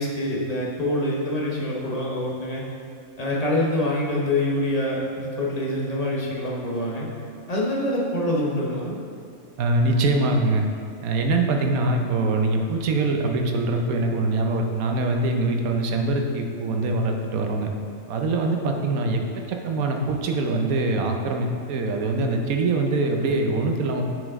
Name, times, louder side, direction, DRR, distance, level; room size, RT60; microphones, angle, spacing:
voice 1, 0.0-2.6 3.2-7.1 7.5-8.9, left 1 dB, 35° left, -4 dB, 0.9 m, -25 dB
voice 2, 9.6-10.6 11.0-17.7 18.1-19.2 19.5-24.1, right 2 dB, 90° right, 3 dB, 1.2 m, -23 dB
7.4 x 5.1 x 3.6 m, 2.3 s
omnidirectional pair, 1.4 m